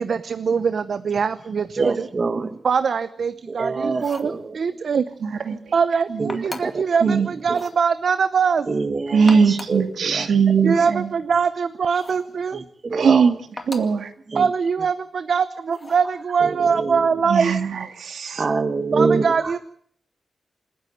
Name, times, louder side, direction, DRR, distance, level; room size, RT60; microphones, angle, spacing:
voice 1, 0.0-1.9 2.6-5.0 5.7-8.7 10.6-12.6 14.3-17.5 18.9-19.6, right 6 dB, 60° right, 13 dB, 0.8 m, -22 dB
voice 2, 1.8-2.6 3.4-4.6 5.5-5.6 6.2-7.6 8.7-11.0 12.5-13.4 14.3-14.5 16.4-17.1 18.3-19.5, right 4 dB, 35° right, 10 dB, 1.2 m, -26 dB
sound 1, 3.9-4.4 6.3-6.9 7.5-7.8 9.1-9.9 11.9-12.3 13.6-14.0 15.7-16.1, left 2 dB, 25° left, 2.2 m, -38 dB
voice 3, 5.2-5.6 6.1-6.4 7.0-7.3 9.1-11.1 12.9-13.3 13.7-14.1 17.3-18.4, right 6 dB, 85° right, 8 dB, 2.3 m, -20 dB
27.5 x 10.5 x 9.3 m, 0.62 s
wide cardioid pair, 155°, 0 cm